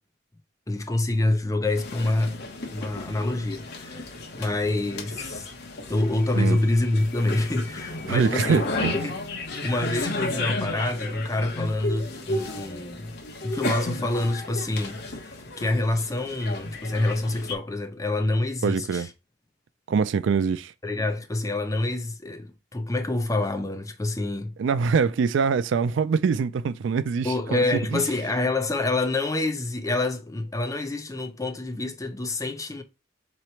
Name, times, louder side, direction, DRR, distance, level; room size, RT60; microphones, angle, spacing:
voice 1, 0.7-2.4 2.7-5.5 5.9-9.2 9.6-13.1 13.4-19.1 20.8-24.5 27.2-32.8, left 2 dB, 15° left, 0.6 m, -27 dB
sound 1, 1.8-17.5, left 2 dB, 55° left, 1.0 m, -33 dB
voice 2, 8.1-9.0 18.6-19.1 19.9-20.7 24.6-28.0, right 5 dB, 70° right, 0.3 m, -24 dB
3.8 x 3.1 x 4.4 m
head